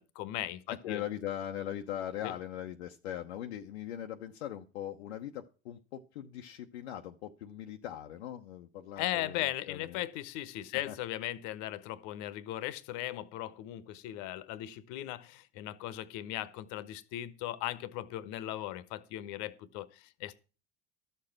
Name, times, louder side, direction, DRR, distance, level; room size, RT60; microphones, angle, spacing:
voice 1, 0.0-1.0 2.2-2.3 9.0-20.3, left 14 dB, 60° left, 1.1 m, -38 dB
voice 2, 0.7-10.0 10.7-11.0, left 11 dB, 75° left, 0.8 m, -40 dB
13.0 x 6.8 x 5.8 m
hypercardioid pair, 70°, 33 cm